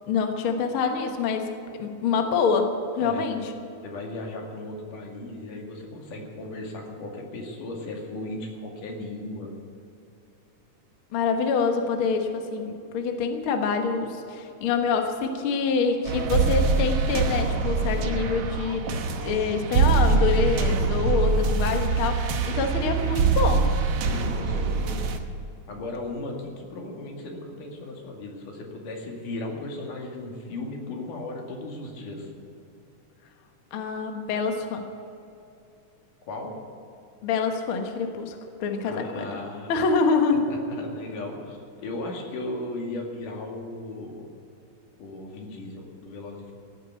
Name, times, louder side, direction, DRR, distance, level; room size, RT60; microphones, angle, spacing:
voice 1, 0.1-1.5 1.8-3.4 11.1-23.7 33.7-34.9 37.2-39.3 39.7-40.5, left 5 dB, 55° left, 4 dB, 1.7 m, -26 dB
voice 2, 3.0-3.3 3.8-9.5 17.9-18.5 24.1-25.1 25.7-32.3 36.2-36.5 38.8-39.9 40.5-44.3 45.0-46.5, left 2 dB, 80° left, 0 dB, 3.9 m, -36 dB
sound 1, 16.0-25.2, right 4 dB, 60° right, 1.8 m, -24 dB
16.5 x 9.4 x 8.2 m, 2.7 s
omnidirectional pair, 3.6 m